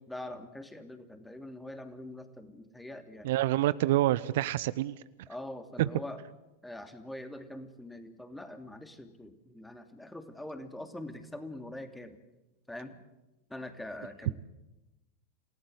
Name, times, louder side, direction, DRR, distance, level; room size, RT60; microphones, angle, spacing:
voice 1, 0.1-3.4 5.3-6.2 6.6-12.2 12.7-13.0 13.5-14.4, left 1 dB, 5° left, 7 dB, 2.8 m, -43 dB
voice 2, 3.2-4.9 5.8-5.9, right 15 dB, 60° right, 17 dB, 0.8 m, -27 dB
28.0 x 18.5 x 8.0 m, 0.99 s
figure-of-eight pair, 90°, 0 cm